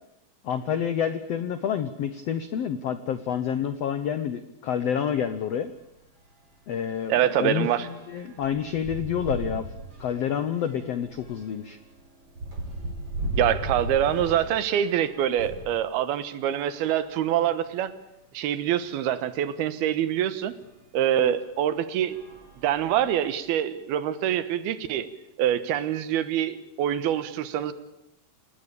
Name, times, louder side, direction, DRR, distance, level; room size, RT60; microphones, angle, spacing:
voice 1, 0.4-5.7 6.7-9.7 10.0-11.8 21.2-21.3, left 8 dB, 85° left, 11 dB, 1.4 m, -28 dB
sound 1, 5.3-5.4 5.8-5.9 6.3-15.7 16.5-17.8 18.5-18.6 18.8-18.9 20.6-20.8 21.4-21.6 22.0-23.3, right 1 dB, 35° right, 6.4 m, -37 dB
voice 2, 7.1-7.9 13.4-17.9 18.3-20.5 20.9-22.2 22.6-25.1 25.4-27.7, right 10 dB, 80° right, 13 dB, 3.2 m, -25 dB
28.0 x 18.0 x 8.7 m, 0.85 s
omnidirectional pair, 4.4 m